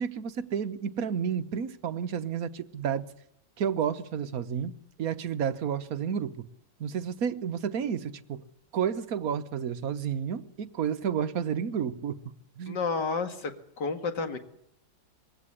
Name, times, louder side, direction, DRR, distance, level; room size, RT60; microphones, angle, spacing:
voice 1, 0.0-3.1 3.6-4.7 5.0-6.5 6.8-8.4 8.7-12.2 12.6-12.8, right 8 dB, 50° right, 1.4 m, -31 dB
voice 2, 12.7-14.4, left 4 dB, 60° left, 2.6 m, -31 dB
22.5 x 16.5 x 9.9 m
omnidirectional pair, 2.1 m